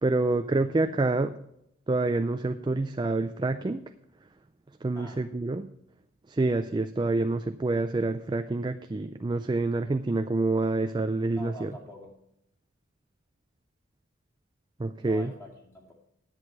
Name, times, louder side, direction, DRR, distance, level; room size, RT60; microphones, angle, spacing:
voice 1, 0.0-1.3 1.9-3.8 4.8-5.7 6.3-11.7 14.8-15.3, right 2 dB, 20° right, 8 dB, 0.3 m, -27 dB
voice 2, 4.9-5.6 11.3-12.1 15.0-15.9, equal, 15° left, -1 dB, 2.3 m, -46 dB
11.0 x 7.9 x 5.9 m, 0.79 s
head